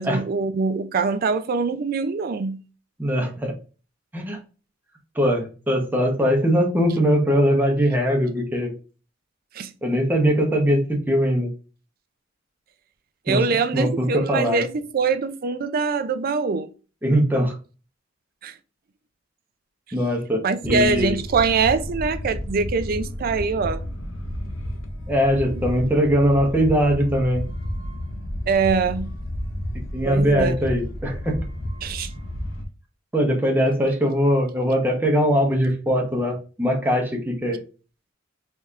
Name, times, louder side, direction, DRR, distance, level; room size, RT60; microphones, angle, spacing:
voice 1, 0.0-2.6 9.5-9.7 13.3-16.7 18.4-18.5 20.4-23.9 25.4-25.6 28.5-29.1 30.1-30.6 31.8-32.1, right 5 dB, 50° right, 0.4 m, -23 dB
voice 2, 3.0-3.5 4.1-4.4 5.1-8.7 9.8-11.5 13.3-13.5 13.7-14.6 17.0-17.6 19.9-21.2 25.1-27.4 29.9-31.4 33.1-37.6, equal, 10° right, 0.9 m, -21 dB
sound 1, 20.6-32.6, equal, 90° left, 0.7 m, -31 dB
4.2 x 3.3 x 2.4 m
head